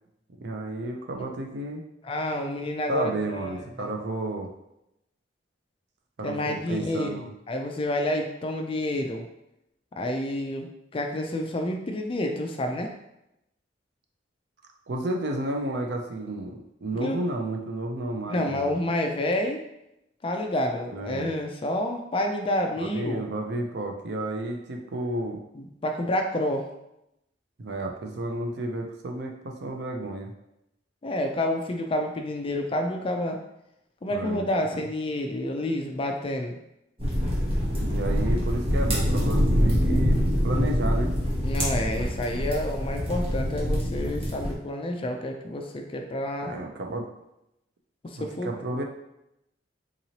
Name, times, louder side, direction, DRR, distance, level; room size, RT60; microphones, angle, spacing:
voice 1, 0.4-1.8 2.9-4.5 6.2-7.3 14.9-18.7 20.9-21.3 22.8-25.4 27.6-30.3 34.1-34.7 37.8-41.1 46.4-47.1 48.2-48.8, right 1 dB, 65° right, 2 dB, 0.5 m, -32 dB
voice 2, 2.0-3.9 6.2-9.3 10.0-12.9 17.0-17.2 18.3-19.6 20.2-23.2 25.5-26.7 31.0-33.4 34.0-36.6 41.4-46.5 48.0-48.8, left 1 dB, 30° left, 3 dB, 0.4 m, -29 dB
sound 1, 37.0-44.5, equal, 30° right, 1.0 m, -25 dB
3.8 x 3.0 x 2.8 m, 0.84 s
head